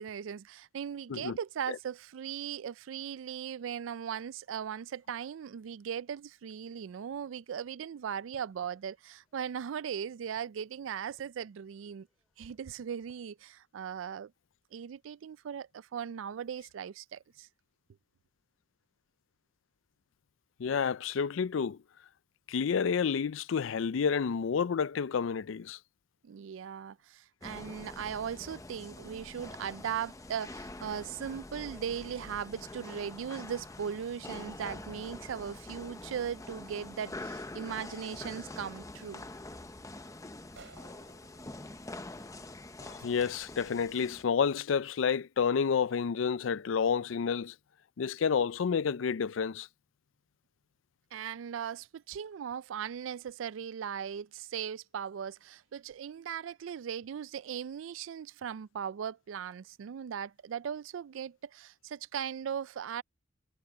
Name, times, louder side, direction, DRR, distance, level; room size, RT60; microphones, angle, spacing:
voice 1, 0.0-12.1 12.4-14.3 14.7-17.5 26.2-39.2 51.1-63.0, right 8 dB, 90° right, 0.4 m, -38 dB
sound 1, 7.6-13.2, equal, ahead, 6.9 m, -74 dB
voice 2, 20.6-21.8 22.5-25.8 42.8-47.5 48.0-49.7, left 6 dB, 80° left, 0.4 m, -30 dB
sound 2, 27.4-44.2, left 2 dB, 15° left, 0.8 m, -45 dB
sound 3, 40.5-43.1, right 4 dB, 70° right, 6.8 m, -58 dB
head